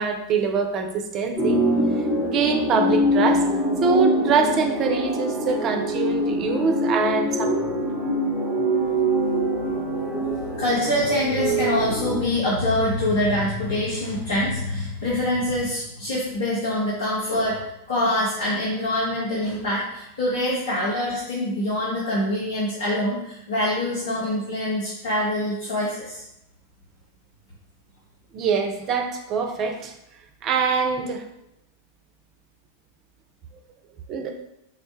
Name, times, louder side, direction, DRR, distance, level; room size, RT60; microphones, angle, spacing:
voice 1, 0.0-1.6 2.2-3.4 3.8-7.7 28.3-29.9 30.4-31.2 34.1-34.3, right 5 dB, 35° right, 5 dB, 0.4 m, -24 dB
sound 1, 1.4-12.2, equal, 10° left, 0.8 m, -24 dB
voice 2, 10.6-17.6 17.9-26.2, left 1 dB, 65° left, -7 dB, 0.9 m, -25 dB
3.8 x 2.1 x 3.1 m, 0.83 s
figure-of-eight pair, 90°, 0 cm